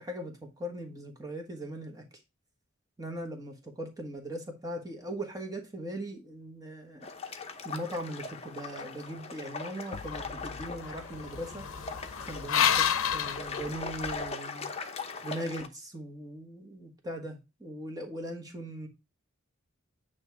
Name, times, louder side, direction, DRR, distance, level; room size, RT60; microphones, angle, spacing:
voice 1, 0.0-2.0 3.0-7.1 7.6-11.6 12.3-12.9 13.1-14.7 15.2-18.9, right 1 dB, 15° right, 1.3 m, -39 dB
sound 1, 7.0-15.7, left 4 dB, 30° left, 0.7 m, -40 dB
sound 2, 9.9-14.3, left 8 dB, 70° left, 0.7 m, -31 dB
8.8 x 3.0 x 4.7 m
head